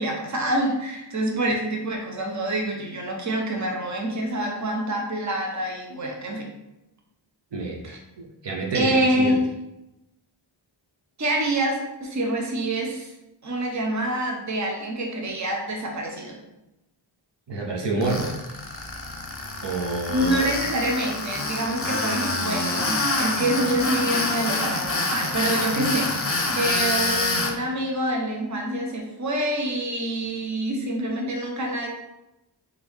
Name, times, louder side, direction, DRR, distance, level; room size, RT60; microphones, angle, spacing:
voice 1, 0.0-6.5 7.8-8.0 8.7-9.4 11.2-13.1 13.4-16.4 20.1-26.2 26.5-31.9, right 1 dB, 35° right, 0 dB, 0.8 m, -26 dB
voice 2, 7.5-9.4 17.5-18.4 19.6-20.5 25.8-26.0, right 3 dB, 60° right, -1 dB, 0.8 m, -28 dB
Tools, 18.0-27.5, left 2 dB, 30° left, 0.7 m, -26 dB
3.7 x 3.6 x 3.4 m, 0.93 s
wide cardioid pair, 80°, 48 cm